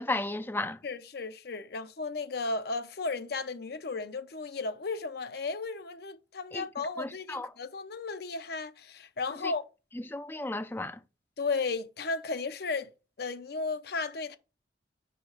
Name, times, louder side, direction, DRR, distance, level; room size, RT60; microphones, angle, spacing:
voice 1, 0.0-0.8 6.5-6.7 7.0-7.5 9.4-9.5 10.1-11.0, left 2 dB, 10° left, 0.4 m, -34 dB
voice 2, 0.8-9.6 11.4-12.9 13.2-14.4, left 3 dB, 55° left, 0.6 m, -34 dB
5.0 x 4.7 x 5.6 m
head